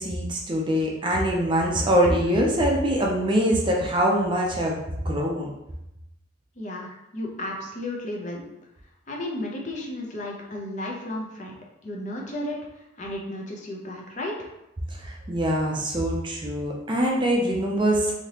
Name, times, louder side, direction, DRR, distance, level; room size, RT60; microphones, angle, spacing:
voice 1, 0.0-4.8 5.0-5.5 15.0-18.1, equal, 25° right, -1 dB, 0.4 m, -23 dB
voice 2, 6.6-8.4 9.1-11.5 11.8-14.5, left 1 dB, 40° left, -1 dB, 0.6 m, -33 dB
3.2 x 2.8 x 2.9 m, 0.88 s
head